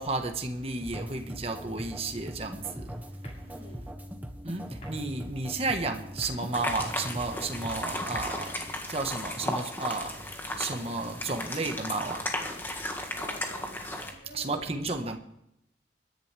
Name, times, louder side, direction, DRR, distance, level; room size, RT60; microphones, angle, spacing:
voice 1, 0.0-3.0 4.4-12.3 14.3-15.2, right 3 dB, 35° right, 1.4 m, -33 dB
sound 1, 0.8-8.6, equal, 10° right, 1.0 m, -41 dB
sound 2, 1.8-2.3 3.1-3.7 4.6-5.1 6.0-6.7 7.6-8.5 9.5-10.1 11.6-12.2 13.5-14.3, left 1 dB, 40° left, 6.7 m, -55 dB
voice 2, 3.4-4.0 13.1-14.9, equal, 75° left, 6.4 m, -50 dB
sound 3, 6.5-14.1, left 1 dB, 10° left, 1.8 m, -35 dB
22.5 x 10.5 x 3.4 m
head